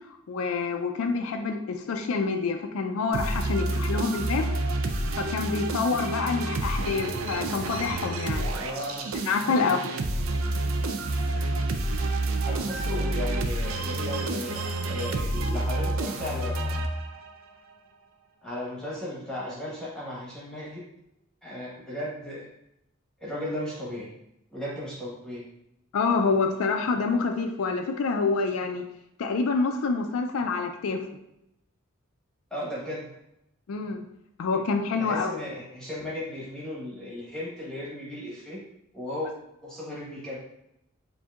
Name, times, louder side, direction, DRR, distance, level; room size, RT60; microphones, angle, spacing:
voice 1, 0.3-4.5 5.2-8.5 9.1-9.8 25.9-28.8 29.2-31.0 33.7-34.0 34.4-35.4, left 4 dB, 90° left, 5 dB, 0.4 m, -27 dB
sound 1, 3.1-17.4, right 2 dB, 75° right, 0.4 m, -29 dB
voice 2, 8.5-9.7 11.3-11.6 12.4-16.9 18.4-20.8 21.4-22.5 23.2-24.1 24.5-25.4 32.5-33.1 34.5-34.6 35.0-38.6 38.9-39.3 39.6-40.4, left 1 dB, 5° left, -6 dB, 1.0 m, -36 dB
7.1 x 2.6 x 2.3 m, 0.83 s
head